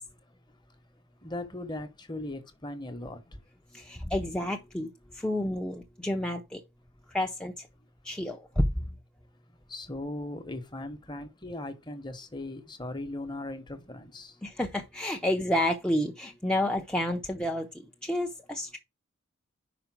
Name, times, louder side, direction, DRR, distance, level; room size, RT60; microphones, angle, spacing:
voice 1, 1.2-3.2 9.7-14.3, left 1 dB, 20° left, 1.0 m, -38 dB
voice 2, 3.7-6.6 7.1-7.7 8.0-8.8 14.4-18.8, left 1 dB, 5° left, 0.6 m, -30 dB
5.3 x 5.0 x 5.9 m
head